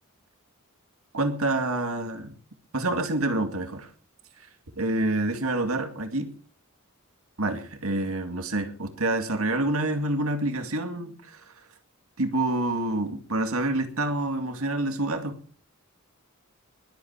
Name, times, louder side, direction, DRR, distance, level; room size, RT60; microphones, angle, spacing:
voice 1, 1.1-2.3 2.7-3.9 4.8-6.3 7.4-11.4 12.2-15.4, right 2 dB, 80° right, 6 dB, 2.2 m, -27 dB
21.5 x 8.4 x 4.7 m, 0.42 s
head